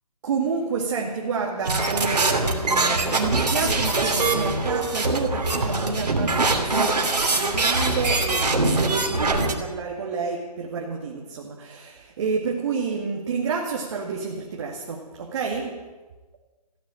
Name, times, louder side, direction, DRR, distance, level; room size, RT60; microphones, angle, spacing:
voice 1, 0.2-15.9, right 5 dB, 45° right, 0 dB, 2.2 m, -29 dB
sound 1, 1.6-9.5, right 3 dB, 80° right, 2.9 m, -23 dB
15.5 x 10.5 x 8.8 m, 1.2 s
hypercardioid pair, 150°, 21 cm